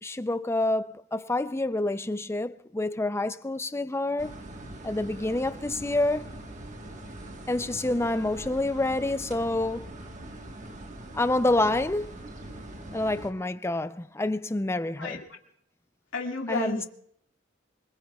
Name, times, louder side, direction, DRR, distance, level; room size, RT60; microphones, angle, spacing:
voice 1, 0.0-4.3 4.8-6.3 7.5-9.9 11.1-12.1 12.9-15.2 16.5-16.8, left 2 dB, 15° left, 0.5 m, -27 dB
sound 1, 4.2-13.3, right 1 dB, 40° right, 1.5 m, -42 dB
voice 2, 15.0-15.4 16.1-16.9, left 3 dB, 85° left, 2.1 m, -33 dB
25.0 x 21.0 x 2.4 m
head